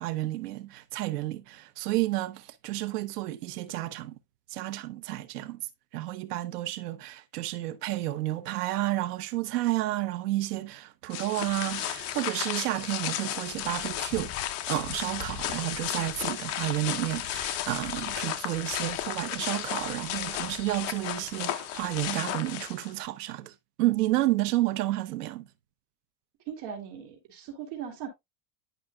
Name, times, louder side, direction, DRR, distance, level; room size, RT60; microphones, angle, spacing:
voice 1, 0.0-4.2 4.5-5.6 5.9-14.3 14.7-23.5 23.8-25.5, right 16 dB, 80° right, 1.0 m, -31 dB
sound 1, 11.1-23.1, left 12 dB, 35° left, 0.6 m, -34 dB
voice 2, 26.5-28.1, right 8 dB, 55° right, 2.6 m, -39 dB
10.5 x 5.4 x 2.2 m
supercardioid pair, 150°, 46 cm